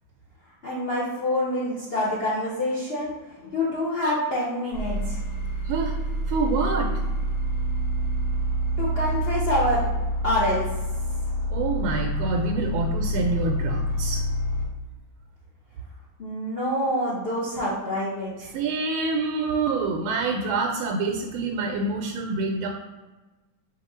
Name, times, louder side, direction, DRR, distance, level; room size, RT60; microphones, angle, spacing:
voice 1, 0.6-3.1 3.4-5.2 8.8-9.9 10.2-10.6 16.2-18.5, left 1 dB, 90° left, -7 dB, 0.5 m, -26 dB
sound 1, 4.7-14.7, equal, 60° left, 0.9 m, -27 dB
voice 2, 5.6-5.9 6.3-6.9 11.5-14.2 18.5-22.7, right 3 dB, 85° right, 2 dB, 1.4 m, -26 dB
4.7 x 2.6 x 4.2 m, 1.2 s
omnidirectional pair, 2.2 m